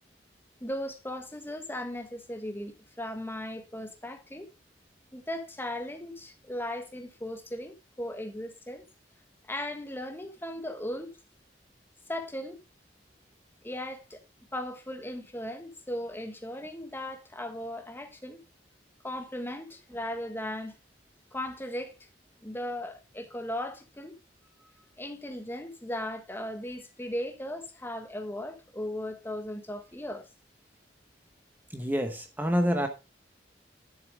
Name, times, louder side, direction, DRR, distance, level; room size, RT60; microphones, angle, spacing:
voice 1, 0.6-4.5 5.1-8.8 9.5-11.1 12.1-12.6 13.6-14.2 14.5-18.4 19.0-20.7 21.3-21.9 22.4-24.2 25.0-30.3, left 1 dB, 15° left, 1.3 m, -37 dB
voice 2, 31.7-32.9, equal, 10° right, 0.9 m, -27 dB
10.5 x 6.8 x 3.5 m
head